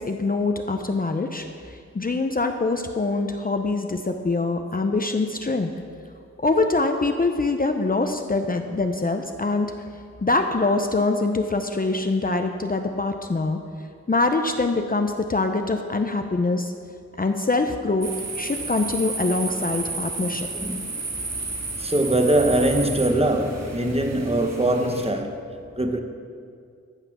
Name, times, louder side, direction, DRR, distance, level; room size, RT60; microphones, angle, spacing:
voice 1, 0.0-5.7 6.4-9.7 10.2-13.6 14.1-16.7 17.2-18.1 18.4-20.5, left 3 dB, 30° left, 5 dB, 0.6 m, -24 dB
sound 1, 18.0-25.1, right 3 dB, 65° right, 1.5 m, -32 dB
voice 2, 20.5-20.9 21.8-25.4 25.8-26.0, right 1 dB, 20° right, 5 dB, 1.0 m, -22 dB
14.5 x 5.8 x 6.0 m, 2.3 s
wide cardioid pair, 75°, 29 cm